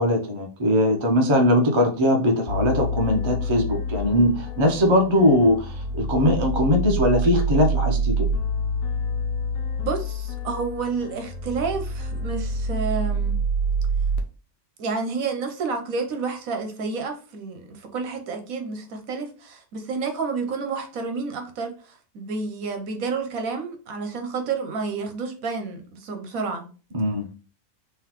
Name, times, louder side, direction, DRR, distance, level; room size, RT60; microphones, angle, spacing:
voice 1, 0.0-8.3 26.9-27.3, left 1 dB, 30° right, 0.5 m, -20 dB
sound 1, 2.5-14.2, right 1 dB, 70° left, 1.1 m, -27 dB
voice 2, 9.8-13.4 14.8-26.7, right 4 dB, 65° right, 1.1 m, -30 dB
3.8 x 3.3 x 3.0 m
omnidirectional pair, 1.6 m